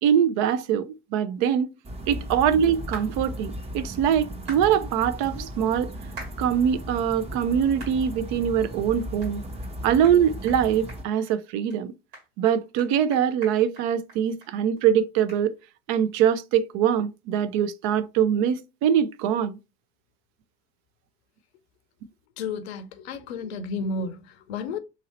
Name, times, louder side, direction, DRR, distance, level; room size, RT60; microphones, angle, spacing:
voice 1, 0.0-1.7 2.1-5.9 6.4-9.4 9.8-11.9 12.4-15.5 15.9-19.6, right 9 dB, 60° right, 0.5 m, -23 dB
sound 1, 1.8-11.0, equal, 20° right, 0.8 m, -36 dB
sound 2, 2.9-3.1 4.5-4.7 6.2-6.4 6.9-7.0 7.8-8.0 8.4-8.5 9.2-9.3 9.6-9.7 10.0-10.2 10.5-10.6 10.9-11.3 11.7-11.8 12.1-14.5 14.8-14.9 15.3-15.4, right 2 dB, 80° right, 1.8 m, -42 dB
voice 2, 22.4-24.8, left 4 dB, 80° left, 0.5 m, -32 dB
2.9 x 2.7 x 2.8 m
hypercardioid pair, 70°, 32 cm